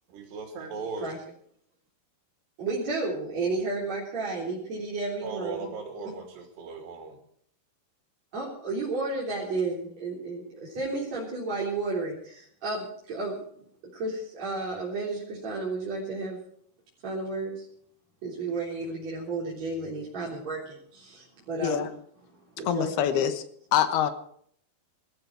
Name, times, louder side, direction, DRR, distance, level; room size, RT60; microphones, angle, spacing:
voice 1, 0.1-1.1 5.2-7.2, right 4 dB, 90° right, 1 dB, 4.8 m, -37 dB
voice 2, 2.6-5.7 8.3-13.4 13.9-16.4 17.0-17.7 18.2-21.9 22.6-23.2, right 3 dB, 45° right, -6 dB, 4.8 m, -32 dB
voice 3, 22.7-23.4 23.7-24.1, left 10 dB, 75° left, 10 dB, 3.1 m, -25 dB
20.5 x 14.0 x 4.7 m, 0.64 s
omnidirectional pair, 4.7 m